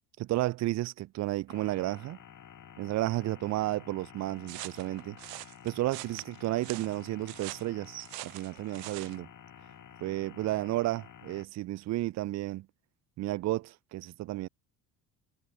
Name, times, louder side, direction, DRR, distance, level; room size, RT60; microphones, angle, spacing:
voice 1, 0.2-2.2 2.8-5.2 5.6-9.3 10.0-12.7 13.2-14.5, right 17 dB, 35° right, 0.4 m, -32 dB
sound 1, 1.5-11.4, left 8 dB, 40° left, 3.7 m, -52 dB
sound 2, 4.5-9.2, right 24 dB, 75° right, 0.8 m, -44 dB
hypercardioid pair, 55°, 50 cm